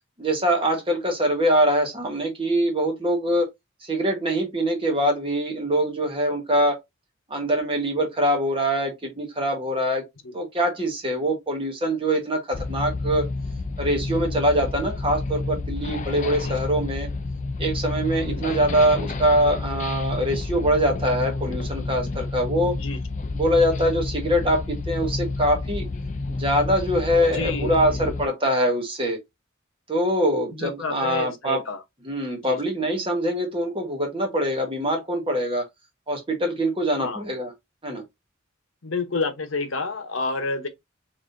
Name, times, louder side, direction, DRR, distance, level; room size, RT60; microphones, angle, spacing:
voice 1, 0.2-3.5 3.8-6.8 7.3-10.0 10.3-13.3 13.8-17.1 17.6-22.7 23.3-25.8 26.3-29.2 29.9-31.6 32.1-35.7 36.1-37.5 37.8-38.0, equal, 25° right, 1.2 m, -23 dB
sound 1, 12.5-28.3, left 3 dB, 35° left, 0.4 m, -30 dB
voice 2, 27.3-28.1 30.5-31.8 32.4-32.6 37.0-37.2 38.8-40.7, left 3 dB, 70° left, 0.9 m, -29 dB
4.0 x 3.6 x 2.6 m
head